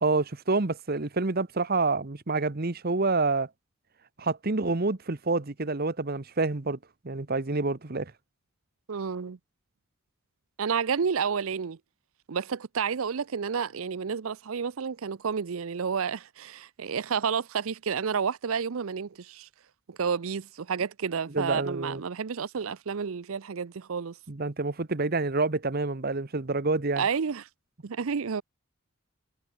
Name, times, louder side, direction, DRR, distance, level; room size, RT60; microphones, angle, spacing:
voice 1, 0.0-3.5 4.2-6.8 7.0-8.1 21.3-22.0 24.3-27.0, right 3 dB, 45° right, 1.1 m, -28 dB
voice 2, 8.9-9.4 10.6-11.8 12.3-19.5 19.9-24.2 27.0-27.4 27.8-28.4, right 6 dB, 75° right, 0.6 m, -30 dB
head